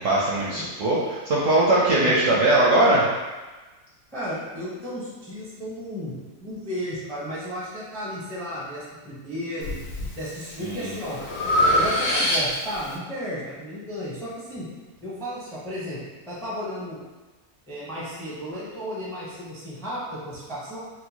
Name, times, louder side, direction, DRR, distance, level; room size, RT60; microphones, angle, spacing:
voice 1, 0.0-3.0 10.6-10.9, right 2 dB, 70° right, -6 dB, 0.7 m, -20 dB
voice 2, 2.0-2.4 4.1-9.8 10.2-11.2 11.7-14.7 15.0-16.0 16.3-17.0 17.7-20.8, equal, 5° left, -7 dB, 0.3 m, -34 dB
Breathing, 9.6-10.1 10.6-12.8, equal, 65° left, 0.9 m, -24 dB
4.4 x 2.1 x 2.8 m, 1.2 s
omnidirectional pair, 1.8 m